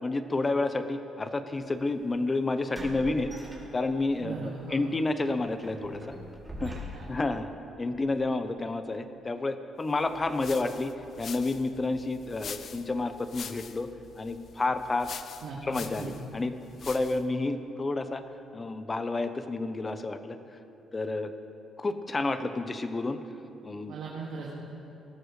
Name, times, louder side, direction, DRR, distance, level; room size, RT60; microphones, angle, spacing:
voice 1, 0.0-3.3 3.7-6.0 6.6-6.7 7.1-7.5 7.8-13.9 14.2-15.1 15.6-16.5 16.8-18.2 18.5-20.4 20.9-21.3 21.8-23.2 23.6-23.9, left 2 dB, 30° left, 9 dB, 0.8 m, -30 dB
sound 1, 1.6-1.8 2.7-4.2 4.6-4.8 5.2-7.3, equal, 15° right, 2.8 m, -42 dB
voice 2, 4.2-4.8 6.6-7.0 15.4-15.6 16.0-16.1 23.9-24.6, right 4 dB, 85° right, -5 dB, 2.0 m, -39 dB
sound 2, 10.0-17.3, left 7 dB, 55° left, 0.5 m, -45 dB
19.0 x 13.0 x 3.3 m, 2.8 s
cardioid pair, 90°, 0 cm